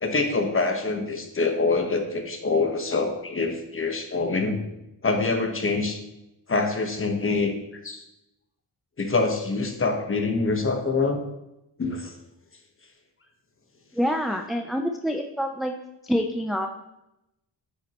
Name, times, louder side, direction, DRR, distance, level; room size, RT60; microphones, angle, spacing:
voice 1, 0.0-4.6 5.0-6.0 6.5-8.0 9.0-11.2 11.8-12.1, left 3 dB, 30° left, 5 dB, 1.2 m, -25 dB
voice 2, 13.9-15.7 16.0-16.7, equal, ahead, 3 dB, 0.4 m, -26 dB
9.3 x 6.3 x 3.0 m, 0.89 s
cardioid pair, 95°, 42 cm